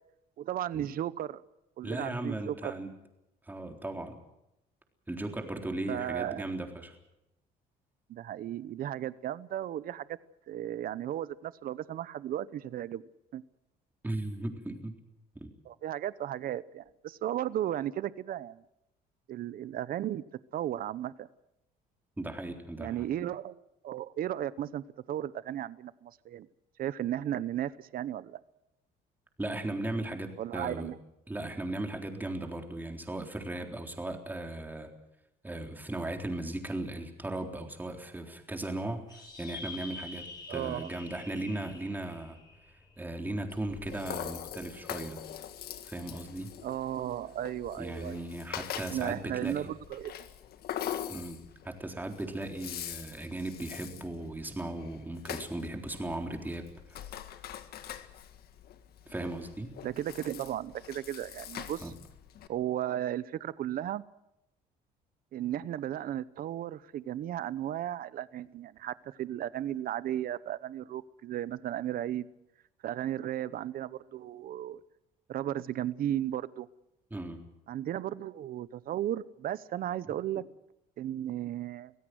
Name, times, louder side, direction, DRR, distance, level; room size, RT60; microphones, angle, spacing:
voice 1, 0.4-1.4 1.8-2.7 5.9-6.5 8.1-10.2 10.5-13.4 15.6-18.6 19.3-20.2 20.5-21.3 22.8-26.5 26.8-28.4 30.4-31.0 40.5-40.9 46.6-48.2 48.8-50.3 59.8-61.9 62.5-64.0 65.3-72.3 72.8-74.8 75.3-76.7 77.7-80.4 81.0-81.9, right 11 dB, 60° right, 0.9 m, -35 dB
voice 2, 1.8-2.9 3.5-4.2 5.1-7.0 14.0-14.9 15.4-15.5 22.2-23.1 29.4-30.9 31.3-34.9 35.4-42.4 43.0-45.2 45.8-46.5 47.8-49.7 51.1-51.4 51.6-56.6 59.1-59.7 61.8-61.9 77.1-77.4, right 1 dB, 10° right, 3.7 m, -37 dB
sound 1, 39.1-43.8, left 3 dB, 25° left, 5.6 m, -47 dB
Rattle (instrument), 43.5-62.5, left 10 dB, 65° left, 1.8 m, -43 dB
25.0 x 16.5 x 7.9 m
cardioid pair, 110°, 17 cm